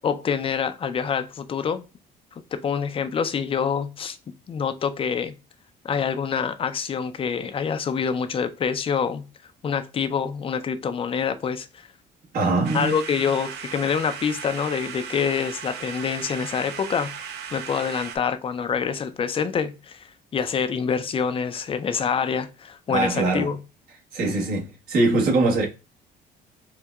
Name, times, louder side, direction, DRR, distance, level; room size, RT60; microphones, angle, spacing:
voice 1, 0.0-1.8 2.5-4.2 4.5-5.3 5.8-9.3 9.6-11.9 12.7-17.1 17.5-23.6, left 6 dB, 35° left, 0.4 m, -26 dB
voice 2, 12.3-13.0 22.9-23.5 24.1-25.7, right 2 dB, 60° right, 1.3 m, -22 dB
sound 1, 12.6-18.2, right 8 dB, 80° right, 0.6 m, -37 dB
4.5 x 2.2 x 2.3 m
cardioid pair, 110°, 17 cm